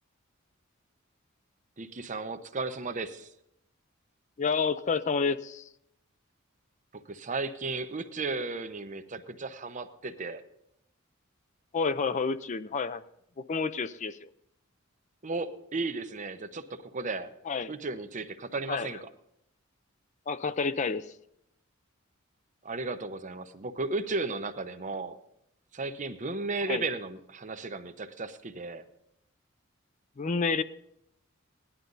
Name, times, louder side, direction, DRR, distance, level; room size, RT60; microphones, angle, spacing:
voice 1, 1.8-3.3 6.9-10.4 15.2-17.3 17.7-19.1 22.6-25.2 25.7-28.8, right 3 dB, 35° right, 8 dB, 0.8 m, -35 dB
voice 2, 4.4-5.7 11.7-13.0 13.5-14.3 17.5-17.7 18.7-18.9 20.3-21.1 26.7-26.8 30.2-30.6, left 5 dB, 35° left, 13 dB, 0.4 m, -29 dB
17.5 x 11.0 x 4.0 m, 0.78 s
head